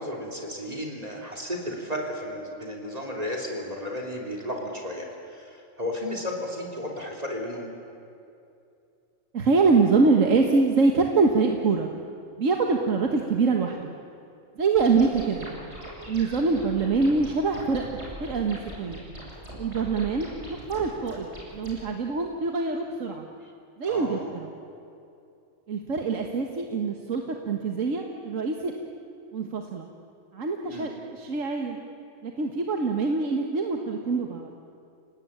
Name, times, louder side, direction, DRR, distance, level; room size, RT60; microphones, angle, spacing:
voice 1, 0.0-7.7 23.8-24.3 30.7-30.9, left 1 dB, 30° right, 1 dB, 3.6 m, -33 dB
voice 2, 9.3-11.9 12.4-13.9 14.6-15.5 16.1-17.8 18.2-19.0 19.6-21.3 21.5-23.3 23.8-24.5 25.7-28.7 29.3-29.9 30.3-31.8 32.2-34.5, right 4 dB, 85° right, 3 dB, 1.8 m, -24 dB
sound 1, 14.8-21.8, equal, 60° right, 6.9 m, -41 dB
29.0 x 18.5 x 8.9 m, 2.6 s
omnidirectional pair, 1.3 m